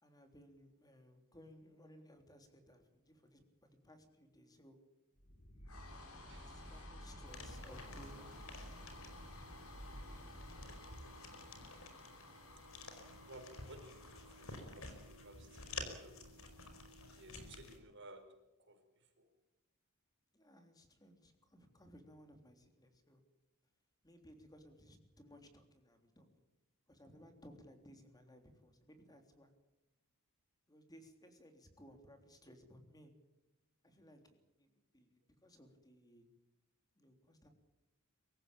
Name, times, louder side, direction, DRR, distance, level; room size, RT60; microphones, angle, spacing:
voice 1, 0.0-4.8 6.4-8.9 20.3-23.2 24.0-26.3 26.9-29.5 30.7-33.1 33.8-36.3 37.0-37.5, equal, 15° left, 6 dB, 3.5 m, -61 dB
sound 1, 5.2-15.7, left 1 dB, 85° left, 6.3 m, -53 dB
voice 2, 6.3-6.9 10.9-11.0 13.1-16.5 17.0-18.3 18.6-19.3, right 1 dB, 55° right, 5 dB, 4.8 m, -57 dB
sound 2, 7.2-17.8, left 3 dB, 65° left, 5.0 m, -52 dB
24.5 x 15.0 x 8.9 m, 0.97 s
head